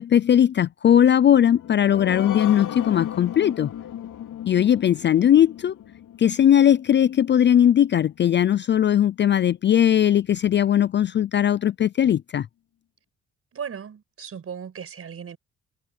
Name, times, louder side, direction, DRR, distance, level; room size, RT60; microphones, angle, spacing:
voice 1, 0.0-3.7 4.5-5.7 6.2-12.5, left 10 dB, 35° left, 0.4 m, -19 dB
sound 1, 1.3-8.4 8.8-8.9 9.3-9.4, left 10 dB, 75° left, 3.6 m, -36 dB
voice 2, 13.5-15.4, right 7 dB, 45° right, 5.6 m, -36 dB
cardioid pair, 130°, 31 cm